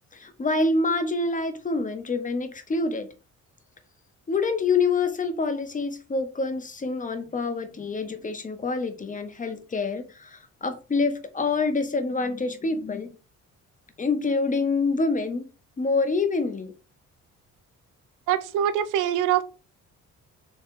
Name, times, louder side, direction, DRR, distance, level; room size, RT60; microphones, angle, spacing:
voice 1, 0.1-3.1 4.3-13.1 14.0-15.4 15.8-16.7, left 3 dB, 25° left, 0.8 m, -26 dB
voice 2, 18.3-19.4, right 10 dB, 90° right, 0.5 m, -23 dB
3.5 x 3.1 x 3.7 m
cardioid pair, 90°, 30 cm